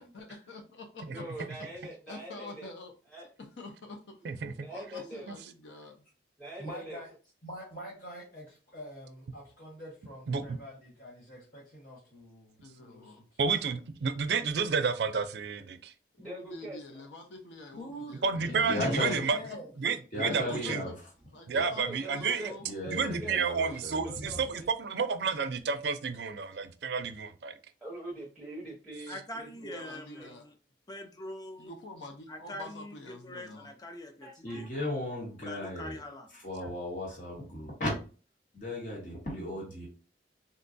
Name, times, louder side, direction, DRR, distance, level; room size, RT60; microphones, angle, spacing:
voice 1, 0.0-1.2 2.1-2.9 3.4-4.3 4.7-6.1 12.6-13.2 16.1-19.6 20.3-20.8 21.3-23.2 29.5-30.5 31.6-33.7, left 2 dB, 80° left, 0.5 m, -47 dB
voice 2, 1.1-2.7 3.1-3.3 4.5-5.3 6.4-7.0 13.8-13.9 16.2-17.1 21.7-22.5 22.8-24.7 27.8-30.3 34.2-34.9 36.6-36.7, right 1 dB, ahead, 0.8 m, -44 dB
voice 3, 6.6-7.1 7.4-13.4 17.7-18.2 18.5-19.7, equal, 65° left, 1.6 m, -45 dB
voice 4, 13.4-15.9 18.2-19.4 19.8-20.8 21.5-22.5 22.9-27.5, right 5 dB, 65° right, 0.4 m, -30 dB
voice 5, 18.3-19.2 20.1-20.9 21.5-21.7 22.6-24.4 34.4-36.0 36.3-37.9 38.5-39.9, left 1 dB, 45° left, 1.1 m, -36 dB
voice 6, 29.1-30.5 30.9-31.7 32.3-32.9 33.2-34.7 35.4-36.3, left 1 dB, 20° left, 0.5 m, -43 dB
3.8 x 2.2 x 2.5 m
head